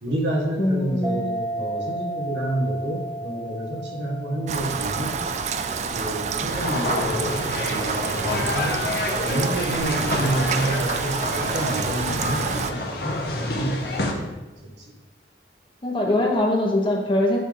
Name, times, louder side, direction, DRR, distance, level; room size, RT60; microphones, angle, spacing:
voice 1, 0.0-5.2 5.9-8.8 9.2-14.2 14.8-14.9, right 1 dB, 80° right, -2 dB, 1.5 m, -29 dB
voice 2, 0.6-1.2 15.8-17.4, left 1 dB, 30° left, 0 dB, 1.0 m, -22 dB
sound 1, 1.0-8.1, right 1 dB, 20° right, 0.9 m, -35 dB
Rain, 4.5-12.7, right 5 dB, 40° right, 0.3 m, -28 dB
sound 2, 6.5-14.1, left 2 dB, 60° left, 0.9 m, -28 dB
9.4 x 3.5 x 3.9 m, 1.1 s
head